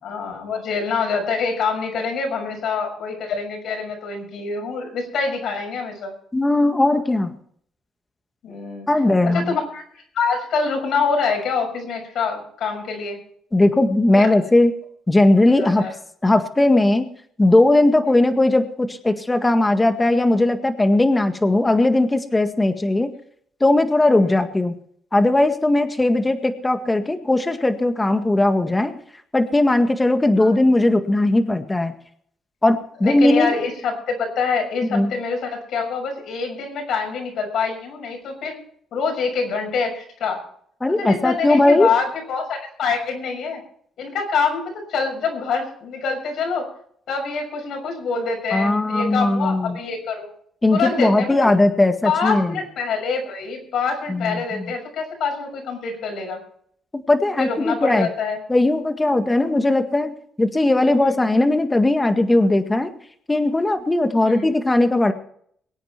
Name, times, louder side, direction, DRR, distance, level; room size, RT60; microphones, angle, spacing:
voice 1, 0.0-6.1 8.4-8.9 9.2-13.2 14.1-14.3 15.6-15.9 24.2-24.4 30.4-30.5 33.0-38.6 38.9-40.4 41.0-43.6 44.0-46.7 47.1-50.3 50.7-51.5 52.0-56.4 57.4-58.4 60.8-60.9 64.2-64.5, left 5 dB, 75° left, 3 dB, 6.4 m, -25 dB
voice 2, 6.3-7.4 8.9-9.6 13.5-14.7 15.1-15.8 16.2-17.1 17.4-23.1 23.6-24.8 25.1-29.0 29.3-31.9 32.6-33.6 34.9-35.1 40.8-41.9 48.5-49.8 50.6-52.6 54.1-54.7 56.9-58.1 58.5-62.9 63.3-65.1, left 2 dB, 15° left, 7 dB, 1.8 m, -18 dB
23.0 x 9.1 x 4.5 m, 0.63 s
cardioid pair, 90°, 0 cm